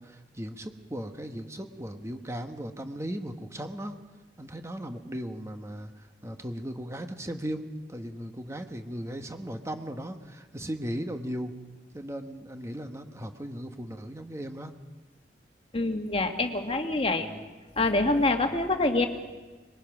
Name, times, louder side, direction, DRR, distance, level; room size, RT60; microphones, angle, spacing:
voice 1, 0.0-4.0 4.4-11.5 11.9-14.7 17.2-17.4, equal, 15° right, 6 dB, 1.2 m, -37 dB
voice 2, 15.7-17.3 17.8-19.1, left 2 dB, 35° left, 6 dB, 1.6 m, -25 dB
24.5 x 22.0 x 6.1 m, 1.3 s
head